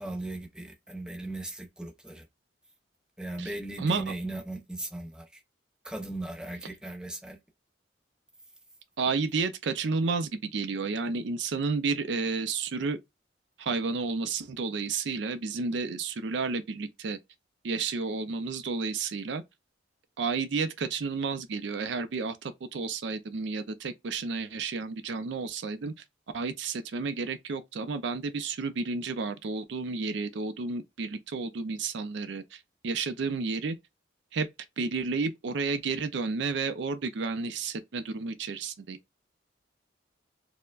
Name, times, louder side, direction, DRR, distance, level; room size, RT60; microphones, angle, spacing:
voice 1, 0.0-2.3 3.2-5.4 5.8-7.4, right 2 dB, 5° right, 0.5 m, -38 dB
voice 2, 9.0-13.0 13.6-17.2 17.6-19.4 20.2-25.9 26.3-33.8 34.3-34.5 34.8-39.0, right 4 dB, 65° right, 0.4 m, -31 dB
4.3 x 2.1 x 2.3 m
head